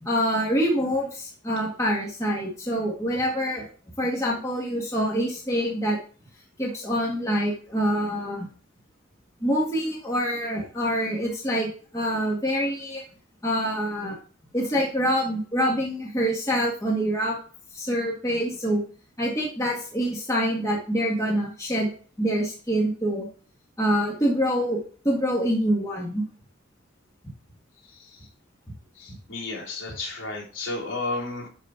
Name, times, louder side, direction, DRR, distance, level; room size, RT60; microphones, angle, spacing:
voice 1, 0.0-3.6 4.0-6.0 6.6-8.5 9.4-13.0 13.4-14.2 14.5-17.4 17.7-18.8 19.2-21.9 22.2-23.3 23.8-24.8 25.0-26.2, equal, 15° left, -3 dB, 1.8 m, -25 dB
voice 2, 29.0-31.5, left 2 dB, 70° left, -4 dB, 3.5 m, -32 dB
11.5 x 4.2 x 4.5 m, 0.41 s
head